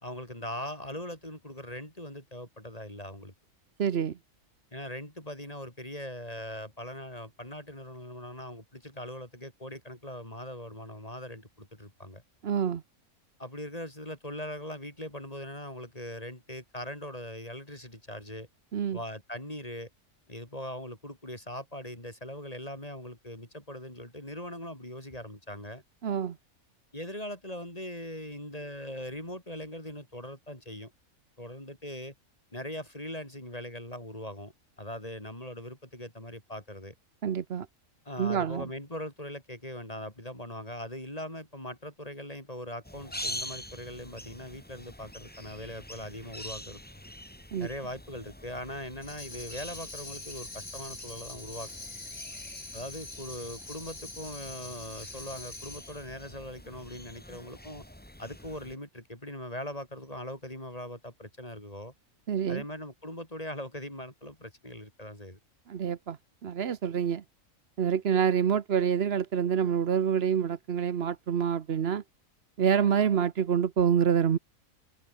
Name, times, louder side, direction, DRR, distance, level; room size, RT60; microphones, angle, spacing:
voice 1, 0.0-3.3 4.7-12.2 13.4-18.5 18.9-19.9 20.3-25.8 26.9-30.9 31.4-32.1 32.5-36.9 38.1-46.8 47.6-51.7 52.7-57.8 58.2-61.9 62.5-65.4, left 1 dB, 25° left, 5.6 m, -41 dB
voice 2, 3.8-4.2 12.4-12.8 18.7-19.0 26.0-26.4 37.2-37.7 38.2-38.6 47.5-47.7 62.3-62.6 65.7-66.2 66.4-67.2 67.8-72.0 72.6-74.4, right 8 dB, 50° right, 1.0 m, -27 dB
sound 1, 42.8-58.8, left 1 dB, 5° left, 2.1 m, -45 dB
Tambourine, 49.0-56.1, left 2 dB, 55° left, 4.5 m, -44 dB
omnidirectional pair, 1.4 m